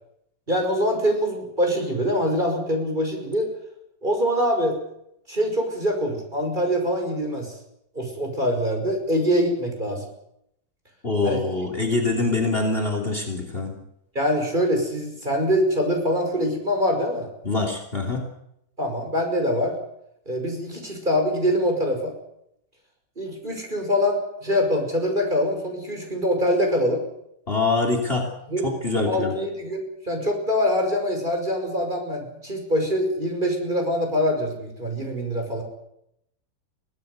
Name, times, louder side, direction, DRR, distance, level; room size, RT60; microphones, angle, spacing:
voice 1, 0.5-3.5 4.0-4.8 5.3-7.5 7.9-10.1 11.2-11.5 14.1-17.3 18.8-19.7 20.3-22.1 23.2-27.0 28.5-28.7 29.0-35.6, equal, 25° right, 3 dB, 5.7 m, -24 dB
voice 2, 11.0-13.8 17.4-18.2 27.5-28.3 28.6-29.4, left 3 dB, 30° left, 4 dB, 3.4 m, -24 dB
24.0 x 17.5 x 8.2 m, 0.78 s
omnidirectional pair, 2.1 m